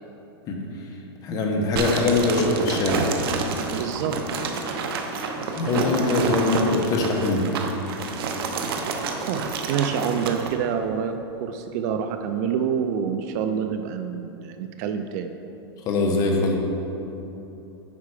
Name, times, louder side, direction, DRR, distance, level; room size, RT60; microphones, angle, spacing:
voice 1, 1.2-3.0 3.6-3.8 5.5-7.5 15.8-16.6, left 3 dB, 25° left, 0 dB, 1.1 m, -22 dB
sound 1, 1.8-10.5, right 4 dB, 60° right, 0.9 m, -28 dB
voice 2, 3.7-4.4 9.3-15.3, right 7 dB, 40° right, 7 dB, 0.4 m, -27 dB
8.8 x 5.6 x 4.8 m, 3.0 s
supercardioid pair, 155°, 14 cm